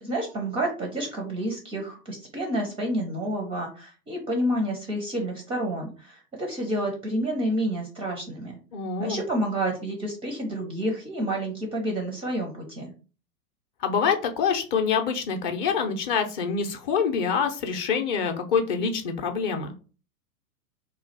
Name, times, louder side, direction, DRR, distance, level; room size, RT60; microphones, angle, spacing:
voice 1, 0.0-8.6 9.0-12.9, right 1 dB, 15° right, 1 dB, 0.4 m, -29 dB
voice 2, 8.7-9.2 13.8-19.7, left 6 dB, 30° left, 5 dB, 0.6 m, -26 dB
3.1 x 2.3 x 4.1 m, 0.36 s
figure-of-eight pair, 100°, 45 cm